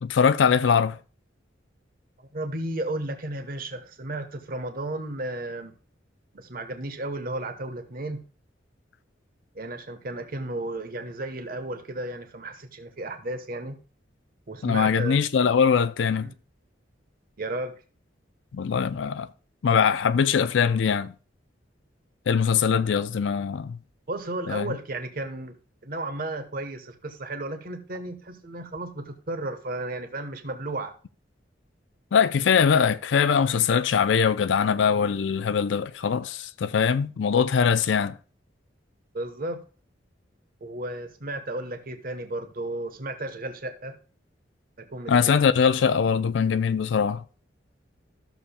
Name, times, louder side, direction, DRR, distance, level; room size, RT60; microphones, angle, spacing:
voice 1, 0.0-1.0 14.6-16.3 18.5-19.3 19.6-21.1 22.3-23.8 24.5-24.7 32.1-38.2 45.1-47.2, left 6 dB, 80° left, 0.4 m, -22 dB
voice 2, 2.2-5.7 6.3-8.2 9.5-13.8 14.5-15.2 16.2-16.3 17.4-17.7 24.1-25.5 25.8-30.9 39.1-39.6 40.6-44.0 44.8-45.4, right 2 dB, 50° right, 1.0 m, -34 dB
13.5 x 7.1 x 2.2 m
head